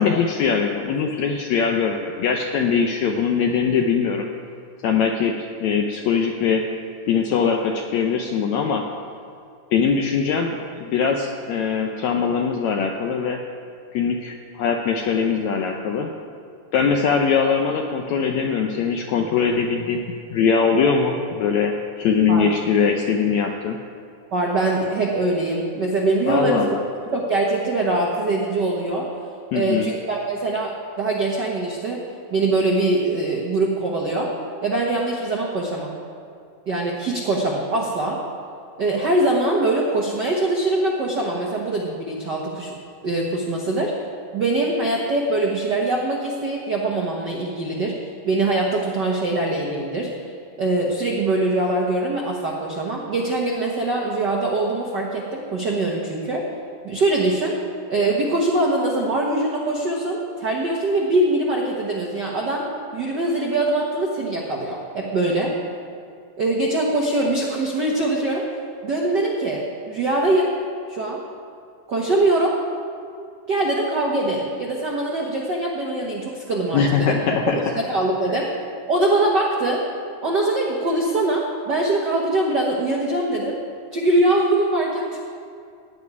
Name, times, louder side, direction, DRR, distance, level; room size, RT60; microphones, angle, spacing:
voice 1, 0.0-4.3 4.8-6.7 7.1-8.8 9.7-13.4 13.9-16.1 16.7-23.8 26.3-26.8 29.5-29.9 76.7-77.6, left 6 dB, 80° left, 3 dB, 1.6 m, -21 dB
voice 2, 24.3-26.7 27.1-29.1 29.5-32.0 32.3-34.3 34.6-35.9 36.7-38.2 38.8-42.7 43.0-43.9 44.3-47.9 48.2-50.1 50.6-56.4 56.8-57.6 57.9-62.7 62.9-65.5 66.4-68.4 68.8-70.5 70.9-71.2 71.9-72.6 73.5-77.2 77.5-78.5 78.9-79.8 80.2-83.6 83.9-85.2, right 2 dB, 85° right, -2 dB, 0.9 m, -22 dB
16.0 x 5.4 x 9.6 m, 2.4 s
omnidirectional pair, 4.0 m